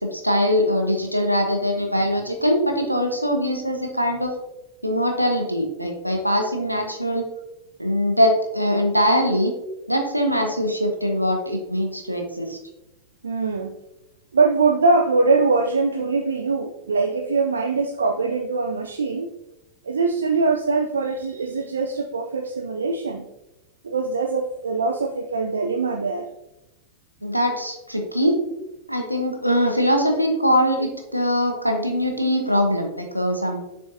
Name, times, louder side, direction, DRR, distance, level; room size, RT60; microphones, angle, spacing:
voice 1, 0.0-4.3 4.8-7.3 7.8-9.5 9.9-12.6 27.2-28.4 28.9-33.6, equal, 90° right, 3 dB, 1.0 m, -22 dB
voice 2, 13.2-13.7 14.3-19.3 19.8-23.3 23.8-26.3, right 3 dB, 70° right, 6 dB, 0.4 m, -22 dB
7.0 x 6.2 x 2.6 m, 0.92 s
figure-of-eight pair, 90°, 0 cm